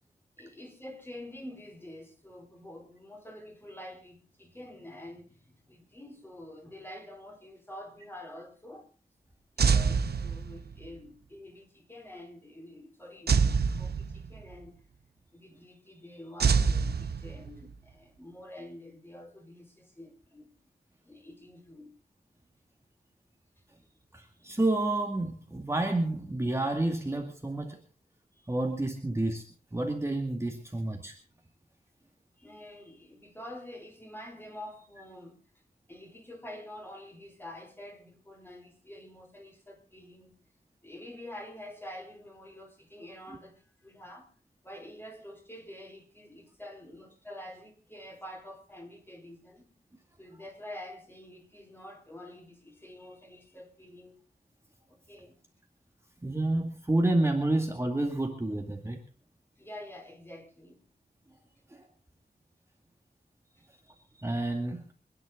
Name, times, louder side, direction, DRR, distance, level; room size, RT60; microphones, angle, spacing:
voice 1, 0.4-8.9 9.6-14.7 15.3-20.5 21.0-21.9 32.4-35.4 35.9-40.4 40.8-44.3 44.6-49.7 50.2-54.2 54.9-55.4 59.6-60.8 63.6-64.2, left 1 dB, 15° left, 4.2 m, -47 dB
sound 1, 9.6-10.9 13.3-14.5 16.4-17.7, right 5 dB, 85° right, 1.0 m, -26 dB
voice 2, 24.1-27.8 28.5-29.5 29.7-31.2 56.2-59.0 61.7-61.9 64.2-64.9, right 2 dB, 15° right, 2.2 m, -29 dB
26.0 x 10.0 x 3.8 m
wide cardioid pair, 100°, 16 cm